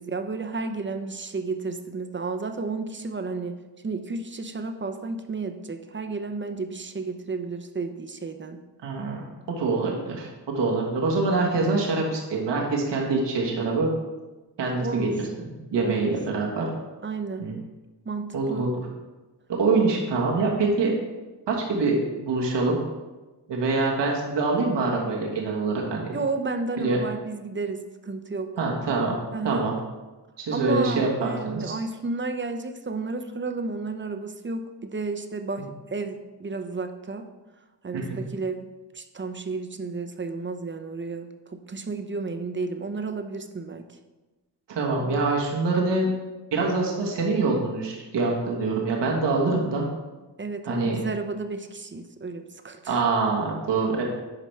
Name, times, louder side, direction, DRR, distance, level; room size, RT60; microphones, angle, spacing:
voice 1, 0.0-3.6 3.8-8.6 14.8-15.2 15.8-16.1 17.0-17.5 18.0-18.7 26.1-28.5 29.3-29.7 30.5-37.3 37.8-38.7 38.9-43.9 50.4-53.0, right 3 dB, 30° right, 7 dB, 0.8 m, -32 dB
voice 2, 8.8-9.2 9.6-13.9 14.6-15.1 15.4-16.7 17.4-17.6 18.3-18.8 19.6-20.9 21.5-22.8 23.5-26.2 26.8-27.0 28.6-29.2 29.4-29.8 30.4-31.7 37.9-38.2 44.7-46.1 46.5-49.8 50.6-51.0 52.9-54.0, right 3 dB, 85° right, -1 dB, 1.5 m, -25 dB
11.0 x 5.1 x 3.3 m, 1.2 s
cardioid pair, 60°, 41 cm